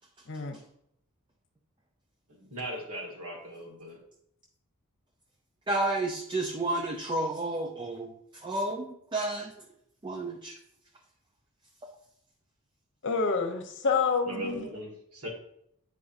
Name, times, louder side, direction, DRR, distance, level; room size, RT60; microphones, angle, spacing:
voice 1, 2.3-4.0 14.3-15.3, equal, 75° right, -1 dB, 1.7 m, -39 dB
voice 2, 5.7-8.8 9.1-9.5 10.0-10.5, right 2 dB, 20° right, 2 dB, 0.5 m, -31 dB
voice 3, 13.0-14.7, left 4 dB, 55° left, 5 dB, 0.9 m, -28 dB
8.5 x 4.9 x 2.6 m, 0.73 s
head